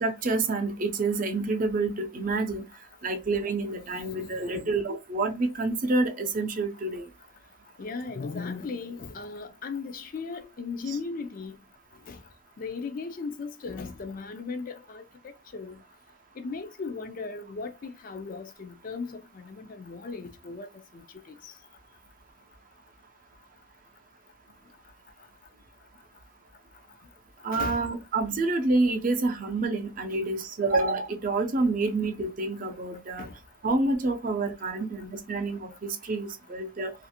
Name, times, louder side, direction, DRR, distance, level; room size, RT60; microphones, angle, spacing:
voice 1, 0.0-2.6 3.0-7.1 10.9-11.0 27.4-33.3 33.6-36.9, right 3 dB, 45° right, 0.5 m, -28 dB
voice 2, 4.2-4.5 7.8-11.5 12.1-12.2 12.6-15.0 15.5-15.8 16.4-20.7 21.4-21.5 27.5-27.8 33.2-33.3, left 4 dB, 45° left, 0.4 m, -37 dB
2.5 x 2.4 x 2.8 m
head